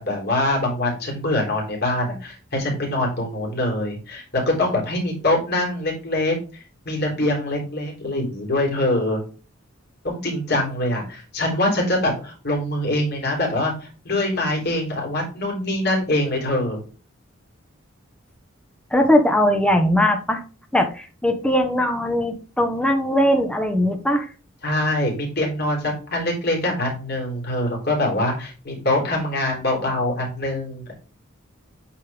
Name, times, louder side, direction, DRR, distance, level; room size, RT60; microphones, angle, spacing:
voice 1, 0.0-6.4 6.8-9.2 10.0-16.8 24.6-30.9, left 1 dB, 50° left, -1 dB, 3.4 m, -24 dB
voice 2, 18.9-20.4 20.7-24.3, equal, 5° left, 5 dB, 1.0 m, -20 dB
8.3 x 4.4 x 3.5 m, 0.35 s
head